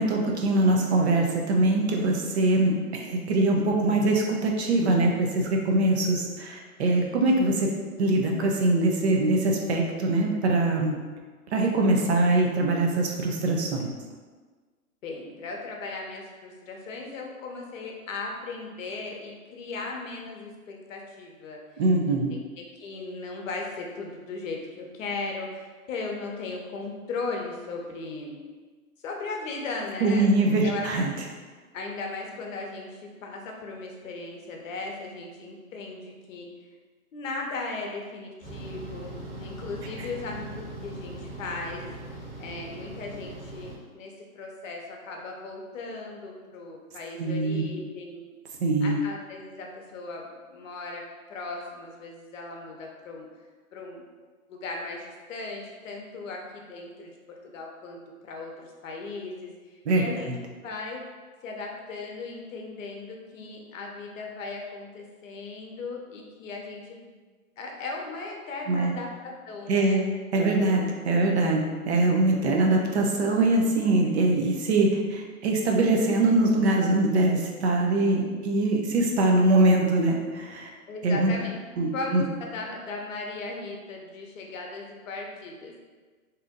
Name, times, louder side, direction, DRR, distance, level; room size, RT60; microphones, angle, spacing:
voice 1, 0.0-7.7 8.0-11.0 11.5-13.9 21.8-22.3 30.0-31.1 47.2-47.7 48.6-49.0 59.9-60.0 68.7-68.9 69.7-70.0 70.3-80.7 81.0-81.3 81.8-82.2, right 2 dB, 45° right, 1 dB, 0.5 m, -23 dB
voice 2, 15.0-21.6 22.1-22.2 22.8-28.4 29.0-30.9 31.7-36.5 37.1-39.1 39.4-41.8 42.4-48.2 48.8-51.0 51.3-53.3 53.7-54.0 54.5-57.1 57.4-60.3 60.6-61.0 61.4-67.1 67.6-70.0 80.9-81.6 81.9-85.8, left 3 dB, 55° left, 0 dB, 0.8 m, -37 dB
sound 1, 38.4-43.7, right 1 dB, 25° right, 1.3 m, -40 dB
2.8 x 2.5 x 3.6 m, 1.4 s
hypercardioid pair, 135°, 45 cm